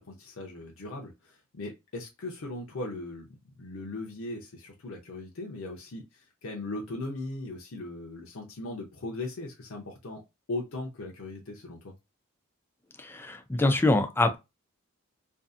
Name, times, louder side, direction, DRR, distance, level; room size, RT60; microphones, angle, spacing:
voice 1, 0.0-3.3 3.6-10.2 10.5-11.9, left 2 dB, 70° left, 0.6 m, -38 dB
voice 2, 13.0-14.4, left 2 dB, 10° left, 0.4 m, -24 dB
2.6 x 2.4 x 2.4 m
head